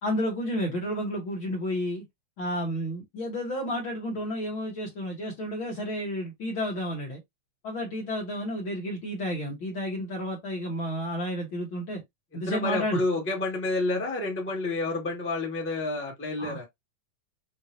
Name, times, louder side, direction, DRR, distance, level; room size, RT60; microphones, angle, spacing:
voice 1, 0.0-2.0 2.4-7.2 7.6-12.0 12.3-13.0 16.4-16.6, equal, 50° left, 1.8 m, -31 dB
voice 2, 12.5-16.6, left 3 dB, 5° left, 1.2 m, -29 dB
6.7 x 2.7 x 2.7 m
omnidirectional pair, 3.6 m